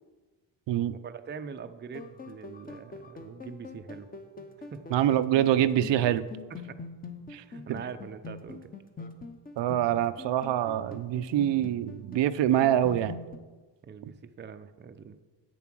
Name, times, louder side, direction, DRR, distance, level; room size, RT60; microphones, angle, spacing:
voice 1, 1.0-4.1 4.6-4.8 6.5-6.8 7.3-8.8 13.8-15.2, right 6 dB, 25° right, 9 dB, 0.5 m, -43 dB
sound 1, 1.9-13.4, left 4 dB, 20° left, 0.7 m, -44 dB
voice 2, 4.9-6.3 7.3-7.4 9.6-13.1, right 11 dB, 80° right, 12 dB, 0.6 m, -25 dB
8.4 x 7.2 x 6.1 m, 1.3 s
cardioid pair, 130°, 43 cm